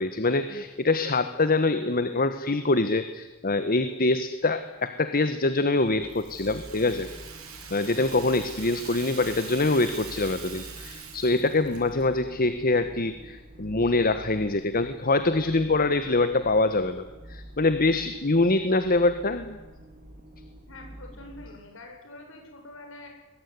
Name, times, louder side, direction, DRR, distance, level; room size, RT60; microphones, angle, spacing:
voice 1, 0.0-7.1 7.7-19.6, left 2 dB, 45° left, 10 dB, 1.4 m, -24 dB
sound 1, 5.8-21.5, right 1 dB, 40° right, 4.1 m, -47 dB
Rattle (instrument), 6.1-12.1, right 7 dB, 80° right, 6.3 m, -43 dB
voice 2, 20.7-23.1, left 2 dB, 65° left, 2 dB, 7.6 m, -45 dB
22.0 x 21.5 x 9.7 m, 1.2 s
head